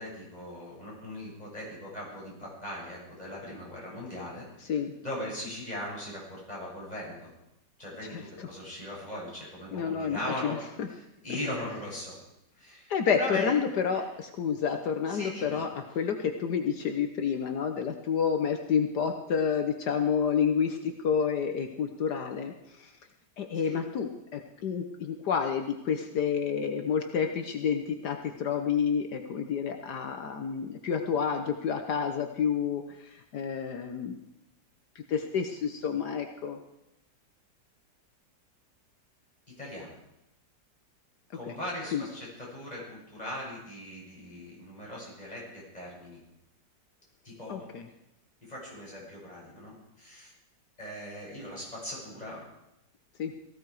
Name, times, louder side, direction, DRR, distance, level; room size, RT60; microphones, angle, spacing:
voice 1, 0.0-4.5 5.0-7.3 7.8-10.6 10.9-12.2 12.6-13.6 15.1-15.6 23.6-23.8 39.6-39.9 41.3-46.2 47.2-47.7 48.4-50.3 50.8-52.5, left 1 dB, 20° left, -5 dB, 7.0 m, -39 dB
voice 2, 4.6-4.9 8.0-8.5 9.7-10.9 12.9-22.9 23.4-34.2 34.9-36.6 41.5-41.6 41.9-42.0 47.5-47.9 53.2-53.3, left 7 dB, 65° left, 5 dB, 1.6 m, -29 dB
18.5 x 16.0 x 4.8 m, 0.86 s
omnidirectional pair, 1.9 m